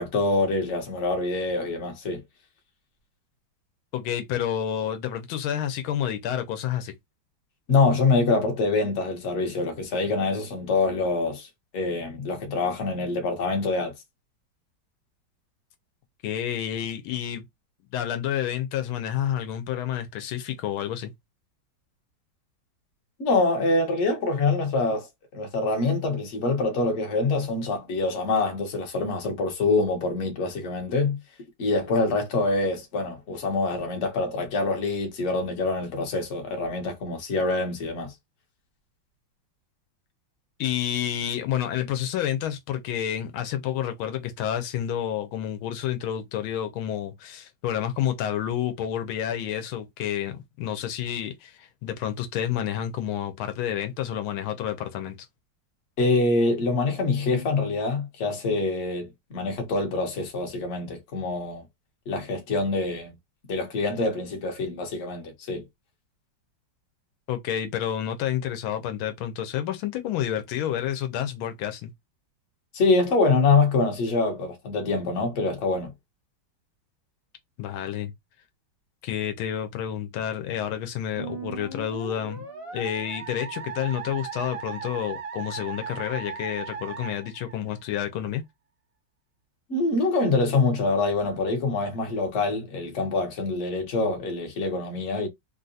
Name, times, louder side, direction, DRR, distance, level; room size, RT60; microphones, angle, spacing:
voice 1, 0.0-2.2 7.7-11.5 11.7-13.9 23.2-31.2 31.6-38.1 56.0-61.6 62.1-63.1 63.5-65.6 72.7-75.9 89.7-95.3, left 3 dB, 45° left, 1.0 m, -25 dB
voice 2, 3.9-6.9 16.2-17.4 17.9-21.1 40.6-55.2 67.3-71.9 77.6-78.1 79.0-82.4 82.7-88.4, left 10 dB, 85° left, 1.5 m, -29 dB
Musical instrument, 81.2-88.0, right 6 dB, 45° right, 0.8 m, -37 dB
3.7 x 2.4 x 2.6 m
omnidirectional pair, 2.3 m